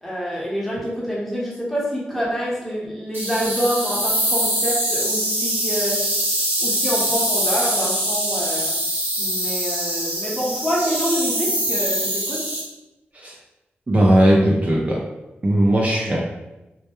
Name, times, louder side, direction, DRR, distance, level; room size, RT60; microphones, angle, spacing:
voice 1, 0.0-6.1 6.6-8.8 9.2-12.4, equal, 5° left, -6 dB, 0.9 m, -26 dB
sound 1, 3.1-12.6, right 1 dB, 55° right, 0.9 m, -23 dB
voice 2, 13.9-15.0 15.4-16.3, right 1 dB, 35° right, -4 dB, 0.4 m, -17 dB
2.1 x 2.1 x 2.9 m, 1.0 s
cardioid pair, 50°, 4 cm